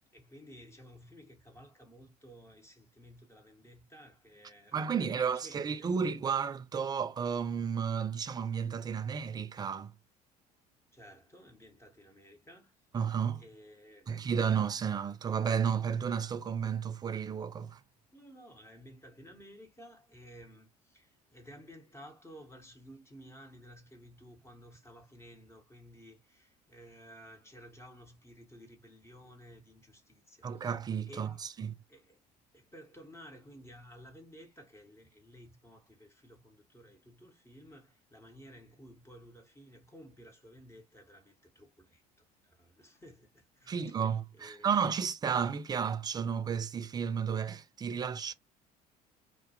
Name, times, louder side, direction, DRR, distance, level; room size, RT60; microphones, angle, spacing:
voice 1, 0.1-5.9 10.9-12.7 13.3-14.4 18.1-31.5 31.9-32.2 32.5-44.0 44.3-44.8, equal, 10° left, 1.0 m, -54 dB
voice 2, 4.7-9.9 12.9-13.4 14.1-17.8 30.4-31.8 43.7-48.3, right 7 dB, 20° right, 0.3 m, -32 dB
2.2 x 2.2 x 2.7 m
hypercardioid pair, 60°, 21 cm